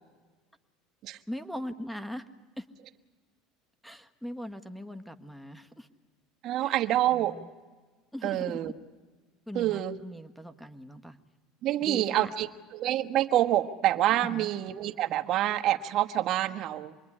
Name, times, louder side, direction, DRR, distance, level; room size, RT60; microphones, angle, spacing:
voice 1, 1.3-2.2 2.6-2.7 3.8-5.9 6.6-6.8 7.1-7.5 8.1-8.7 9.5-11.2 11.8-12.3 14.2-14.5, equal, ahead, 10 dB, 1.5 m, -40 dB
voice 2, 6.4-7.4 8.2-8.7 9.5-10.0 11.6-12.5 12.7-17.0, right 13 dB, 50° right, 6 dB, 1.4 m, -27 dB
27.0 x 21.0 x 10.0 m, 1.4 s
supercardioid pair, 125°, 0 cm